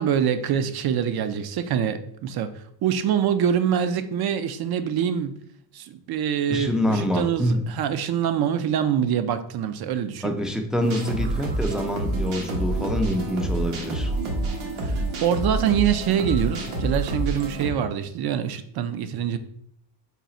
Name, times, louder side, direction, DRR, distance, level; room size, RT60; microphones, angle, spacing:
voice 1, 0.0-5.3 5.7-10.3 14.8-19.4, right 9 dB, 50° right, 11 dB, 0.5 m, -25 dB
voice 2, 6.5-7.7 10.2-14.1, equal, ahead, 3 dB, 0.4 m, -26 dB
sound 1, 10.8-17.7, right 2 dB, 75° right, 1.2 m, -28 dB
3.9 x 2.3 x 4.1 m, 0.66 s
supercardioid pair, 85°, 49 cm